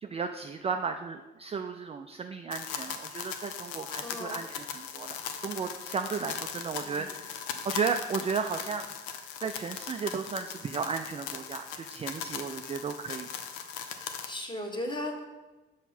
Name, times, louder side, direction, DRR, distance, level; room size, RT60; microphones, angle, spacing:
voice 1, 0.0-7.3 7.6-8.9 9.4-13.3, right 5 dB, 20° right, 6 dB, 0.4 m, -34 dB
sound 1, 2.5-14.3, left 8 dB, 70° left, 0.7 m, -39 dB
voice 2, 4.0-4.4 6.8-7.1 14.0-15.2, left 1 dB, 15° left, 2 dB, 1.4 m, -37 dB
7.1 x 5.6 x 4.3 m, 1.2 s
figure-of-eight pair, 50°, 29 cm